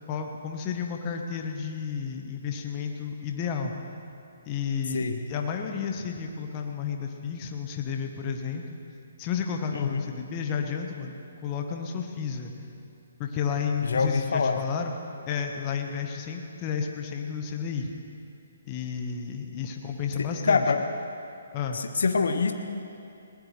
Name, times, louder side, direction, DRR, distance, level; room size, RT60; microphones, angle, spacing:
voice 1, 0.1-3.7 4.4-8.6 9.2-11.1 11.4-12.5 13.2-14.9 15.3-17.9 18.6-20.6 21.5-21.8, left 6 dB, 30° left, 3 dB, 1.4 m, -32 dB
voice 2, 9.7-10.0 13.8-14.6 20.2-20.8 21.7-22.5, left 4 dB, 70° left, 7 dB, 1.0 m, -25 dB
20.5 x 19.0 x 3.4 m, 2.6 s
figure-of-eight pair, 140°, 0 cm